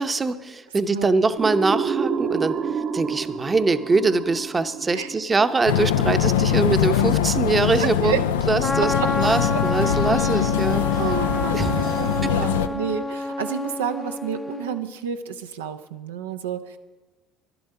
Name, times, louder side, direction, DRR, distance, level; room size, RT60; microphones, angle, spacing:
voice 1, 0.0-2.6 2.9-11.0 11.5-12.3, right 3 dB, 25° right, 10 dB, 0.7 m, -23 dB
sound 1, 1.4-6.1, right 6 dB, 60° right, 0.9 m, -29 dB
sound 2, 5.7-12.7, left 9 dB, 85° left, 0.4 m, -22 dB
voice 2, 7.8-8.3 8.8-9.1 9.4-9.6 11.0-16.8, right 8 dB, 90° right, 6 dB, 0.6 m, -30 dB
Trumpet, 8.6-14.8, left 2 dB, 15° left, 0.5 m, -28 dB
12.0 x 11.5 x 5.5 m, 1.2 s
hypercardioid pair, 70°, 0 cm